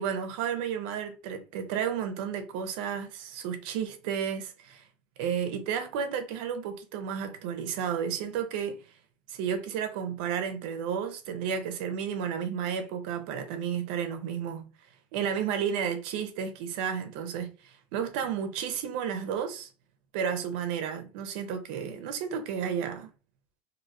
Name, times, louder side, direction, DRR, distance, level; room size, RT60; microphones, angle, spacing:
voice 1, 0.0-4.8 5.2-8.8 9.3-14.7 15.1-19.7 20.1-23.1, right 7 dB, 75° right, 0.8 m, -32 dB
3.1 x 2.7 x 2.6 m
cardioid pair, 160°, 5 cm